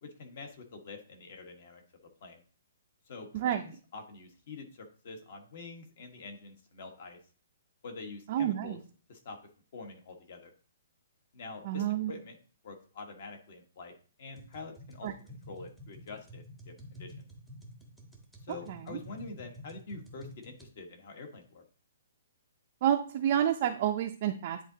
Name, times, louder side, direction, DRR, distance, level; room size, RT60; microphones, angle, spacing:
voice 1, 0.0-1.8 2.2-2.4 3.1-7.2 7.8-8.8 9.1-9.4 9.7-10.5 11.3-12.4 12.6-15.1 15.5-17.3 18.5-21.6, left 3 dB, 50° left, 4 dB, 1.4 m, -46 dB
voice 2, 8.3-8.8 11.6-12.1 15.0-15.1 18.7-19.0 22.8-24.6, right 10 dB, 35° right, 3 dB, 0.5 m, -29 dB
sound 1, 14.4-20.7, left 1 dB, ahead, 0.8 m, -50 dB
9.9 x 3.8 x 2.8 m, 0.39 s
hypercardioid pair, 165°, 0 cm